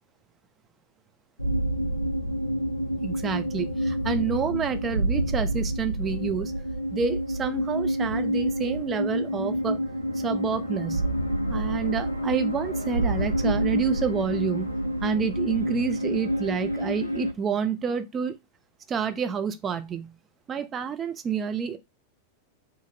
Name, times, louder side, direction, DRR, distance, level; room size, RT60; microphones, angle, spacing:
sound 1, 1.4-17.3, equal, 90° left, 0.4 m, -28 dB
voice 1, 3.0-6.5 6.9-9.8 10.1-11.1 11.5-14.7 15.0-18.4 18.9-20.1 20.5-21.8, right 6 dB, 25° right, 0.4 m, -29 dB
2.8 x 2.5 x 2.6 m
figure-of-eight pair, 90°, 0 cm